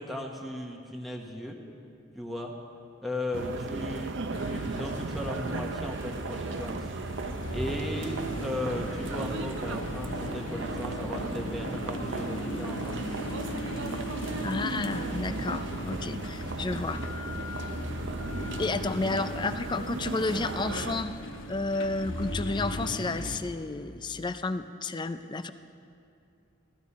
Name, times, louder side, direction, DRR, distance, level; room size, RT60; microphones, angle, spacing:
voice 1, 0.0-1.6 2.1-2.6 3.0-6.9 7.5-13.0, left 1 dB, ahead, 0 dB, 1.0 m, -36 dB
sound 1, 3.3-21.0, right 3 dB, 65° right, 0.6 m, -36 dB
sound 2, 4.3-23.4, left 1 dB, 75° left, 1.0 m, -38 dB
sound 3, 8.3-22.9, right 1 dB, 35° right, 1.0 m, -52 dB
voice 2, 14.4-17.3 18.6-21.1 21.5-25.5, left 3 dB, 25° left, 11 dB, 0.4 m, -31 dB
17.5 x 13.0 x 4.2 m, 2.6 s
head